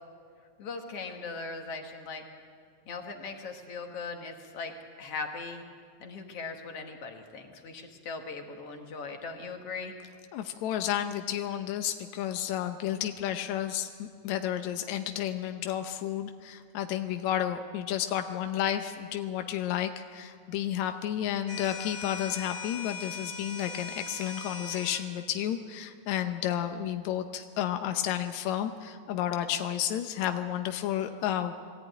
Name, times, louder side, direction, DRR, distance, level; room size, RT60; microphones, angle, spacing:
voice 1, 0.6-2.2 2.9-4.7 5.0-5.6 6.0-9.9, left 4 dB, 55° left, 4 dB, 1.9 m, -39 dB
voice 2, 10.3-31.5, left 11 dB, 75° left, 7 dB, 1.7 m, -31 dB
sound 1, 21.5-25.1, left 4 dB, 25° right, 1.2 m, -40 dB
21.5 x 14.0 x 9.1 m, 2.1 s
omnidirectional pair, 4.1 m